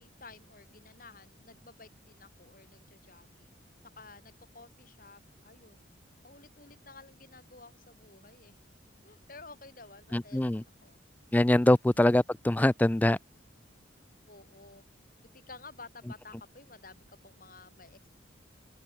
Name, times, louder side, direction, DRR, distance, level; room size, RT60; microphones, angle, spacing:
voice 1, 0.0-3.6 4.0-5.9 6.2-8.6 9.0-11.0 14.3-14.9 15.3-18.1, left 3 dB, 45° left, 6.2 m, -53 dB
voice 2, 10.1-10.6 11.3-13.2, left 1 dB, 10° left, 0.3 m, -23 dB
open air
head